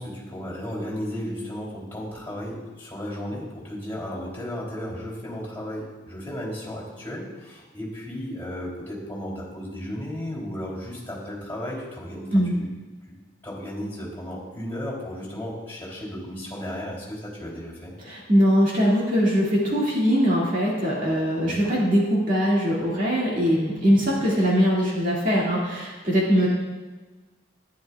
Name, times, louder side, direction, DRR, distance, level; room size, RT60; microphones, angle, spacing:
voice 1, 0.0-12.7 13.4-17.9 21.4-21.6, equal, 10° left, -6 dB, 3.0 m, -34 dB
voice 2, 18.0-26.5, equal, 45° right, -5 dB, 2.1 m, -21 dB
12.0 x 9.8 x 2.3 m, 1.3 s
head